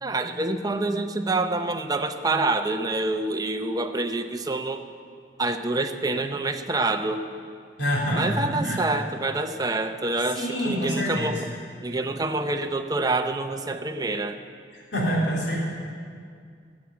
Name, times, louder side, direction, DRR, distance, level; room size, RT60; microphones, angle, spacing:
voice 1, 0.0-4.8 5.4-7.3 8.1-11.4 11.8-14.4, right 2 dB, 20° right, 7 dB, 0.6 m, -27 dB
voice 2, 7.8-8.3 8.5-8.8 10.3-11.4 14.9-15.6, equal, 80° left, -4 dB, 3.5 m, -26 dB
14.5 x 7.5 x 8.1 m, 2.2 s
head